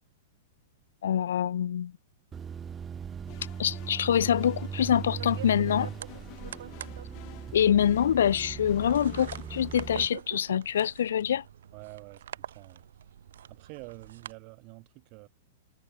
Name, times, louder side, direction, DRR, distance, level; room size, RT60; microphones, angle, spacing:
voice 1, 1.0-1.9 3.6-5.9 7.5-11.4, left 9 dB, 85° left, 0.6 m, -25 dB
sound 1, 2.3-10.1, right 7 dB, 15° right, 0.8 m, -39 dB
sound 2, 3.3-10.1, left 40 dB or more, 40° left, 2.2 m, -50 dB
sound 3, 4.6-14.3, right 10 dB, 80° right, 2.7 m, -46 dB
voice 2, 11.7-12.9 13.5-15.3, right 35 dB, 40° right, 4.6 m, -47 dB
supercardioid pair, 155°, 0 cm